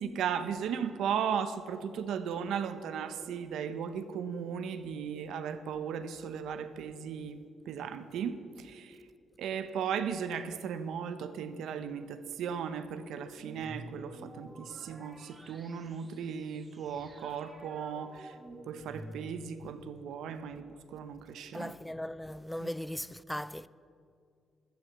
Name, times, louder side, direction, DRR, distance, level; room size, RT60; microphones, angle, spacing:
voice 1, 0.0-7.4 7.7-9.0 9.4-18.3 18.7-21.7 22.6-22.7, right 7 dB, 85° right, 0.8 m, -36 dB
sound 1, 13.3-19.6, right 1 dB, 20° right, 1.7 m, -50 dB
voice 2, 21.5-23.7, left 1 dB, 5° left, 0.3 m, -38 dB
14.5 x 10.5 x 7.2 m
cardioid pair, 120°, 0 cm